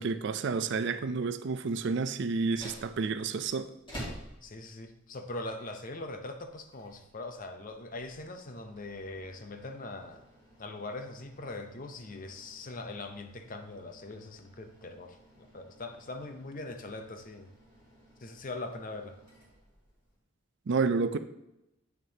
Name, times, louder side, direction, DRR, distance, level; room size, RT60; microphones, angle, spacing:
voice 1, 0.0-3.7 20.7-21.2, right 4 dB, 55° right, 0.4 m, -30 dB
sound 1, 2.4-20.2, equal, 25° left, 2.3 m, -52 dB
voice 2, 4.4-10.3 10.6-17.5 18.2-19.2, left 2 dB, 40° left, 0.7 m, -41 dB
8.8 x 6.4 x 2.8 m
head